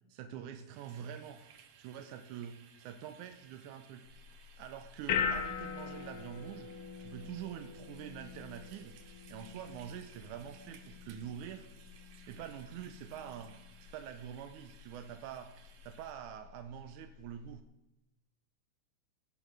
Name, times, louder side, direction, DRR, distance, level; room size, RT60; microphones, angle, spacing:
voice 1, 0.1-1.4 1.8-4.1 4.6-6.7 7.0-8.9 9.3-11.7 12.3-13.5 13.9-15.5 15.8-17.6, right 9 dB, 90° right, 8 dB, 2.2 m, -45 dB
sound 1, 0.7-16.1, right 8 dB, 65° right, 1.7 m, -61 dB
sound 2, 4.1-17.6, left 7 dB, 70° left, 1.3 m, -42 dB
17.0 x 8.1 x 6.1 m, 0.91 s
omnidirectional pair, 3.4 m